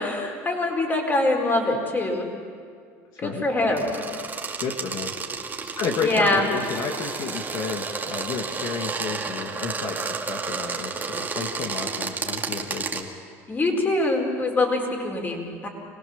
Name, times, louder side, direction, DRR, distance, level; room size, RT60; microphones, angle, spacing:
voice 1, 0.0-2.3 3.2-4.0 6.0-6.4 13.5-15.7, left 2 dB, 25° left, 2 dB, 4.6 m, -24 dB
voice 2, 3.1-3.5 4.6-5.1 5.6-13.1, left 5 dB, 55° left, 2 dB, 2.0 m, -31 dB
sound 1, 3.8-13.0, right 4 dB, 25° right, 2.3 m, -31 dB
26.0 x 18.0 x 7.2 m, 2.2 s
supercardioid pair, 100°, 8 cm